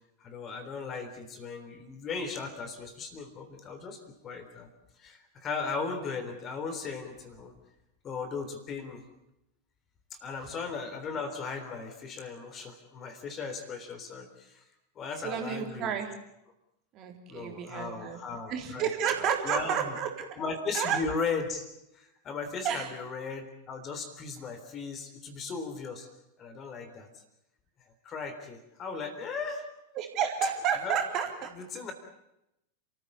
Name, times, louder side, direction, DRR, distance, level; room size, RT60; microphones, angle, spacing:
voice 1, 0.2-4.7 5.0-7.5 8.0-9.0 10.2-14.6 15.0-15.9 17.3-19.9 20.4-21.7 21.9-26.1 26.4-27.1 28.0-29.7 30.8-31.0 31.5-31.9, left 4 dB, 30° left, 8 dB, 3.6 m, -37 dB
voice 2, 15.2-16.1 16.9-18.2 18.5-20.3 20.7-21.0 22.6-22.9 29.9-31.5, right 8 dB, 35° right, 3 dB, 3.8 m, -31 dB
30.0 x 14.5 x 8.6 m, 0.85 s
figure-of-eight pair, 90°, 0 cm